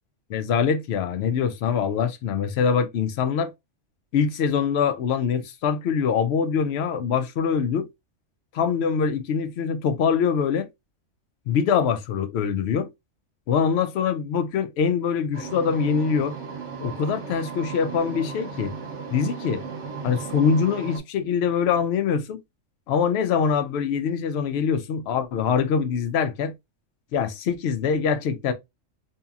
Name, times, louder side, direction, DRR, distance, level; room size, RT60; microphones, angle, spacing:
voice 1, 0.3-3.5 4.1-7.9 8.5-10.7 11.5-12.9 13.5-16.4 16.8-18.7 19.1-19.6 20.0-22.4 22.9-26.5 27.1-28.5, left 6 dB, 65° left, 0.8 m, -24 dB
sound 1, 15.3-21.0, right 5 dB, 70° right, 1.0 m, -35 dB
2.8 x 2.7 x 2.3 m
omnidirectional pair, 1.3 m